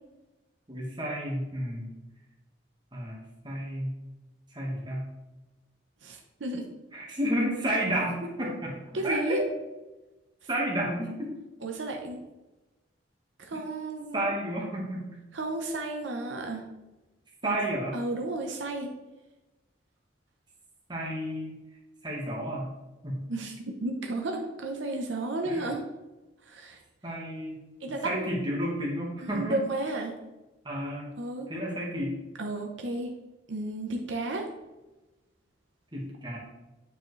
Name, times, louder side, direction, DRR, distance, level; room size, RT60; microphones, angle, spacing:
voice 1, 0.7-1.9 2.9-3.2 3.4-4.0 4.5-5.1 6.9-9.5 10.5-11.3 13.5-13.6 14.1-15.2 17.4-18.0 20.9-21.6 22.0-22.7 23.0-23.3 25.4-25.6 27.0-27.6 28.0-29.6 30.6-31.1 31.5-32.2 35.9-36.4, right 1 dB, 20° right, -2 dB, 1.4 m, -31 dB
voice 2, 6.0-6.7 8.9-9.4 11.6-12.2 13.4-14.3 15.3-16.6 17.4-17.6 17.9-18.9 23.3-25.8 26.4-26.8 27.8-28.3 29.2-30.2 31.2-31.5 32.4-33.1 33.5-34.5, right 2 dB, 75° right, 2 dB, 0.8 m, -33 dB
8.9 x 4.8 x 3.2 m, 1.1 s
head